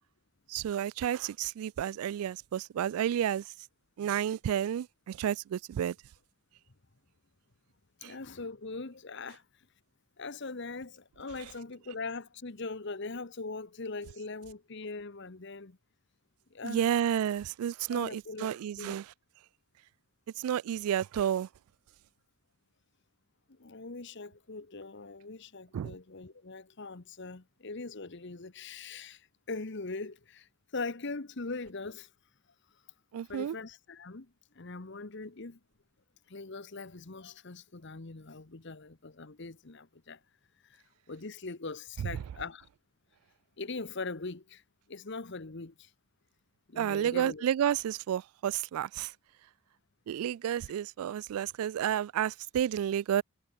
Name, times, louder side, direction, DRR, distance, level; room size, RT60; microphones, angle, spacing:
voice 1, 0.5-3.4 4.0-6.0 8.0-8.1 16.6-19.0 20.4-21.5 25.7-25.9 33.1-33.6 46.8-49.1 50.1-53.2, right 9 dB, 85° right, 0.3 m, -31 dB
voice 2, 8.0-9.4 10.2-15.8 16.5-16.8 17.9-19.0 23.5-32.1 33.3-35.6 36.3-40.2 40.6-40.8 41.1-42.7 43.6-44.6 44.9-45.9 46.7-47.4, left 3 dB, 55° left, 1.1 m, -41 dB
head